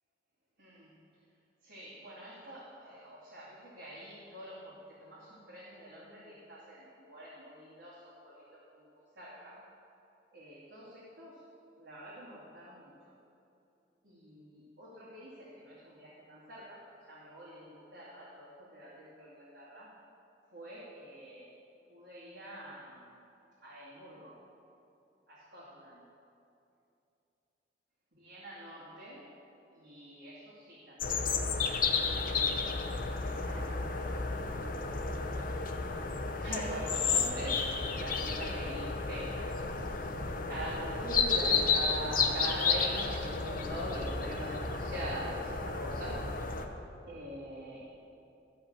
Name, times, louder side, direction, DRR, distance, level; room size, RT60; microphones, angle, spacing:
voice 1, 0.6-1.0 1.6-9.6 10.3-11.4 11.8-12.9 14.0-19.9 20.5-21.5 21.9-23.2 23.6-24.4 25.3-26.0 28.1-29.3 29.7-34.7 36.3-39.9 40.2-46.2 47.1-47.8, right 1 dB, 70° right, -10 dB, 2.5 m, -44 dB
sound 1, 31.0-46.7, left 4 dB, 50° left, 0.8 m, -32 dB
14.0 x 5.7 x 7.3 m, 2.8 s
head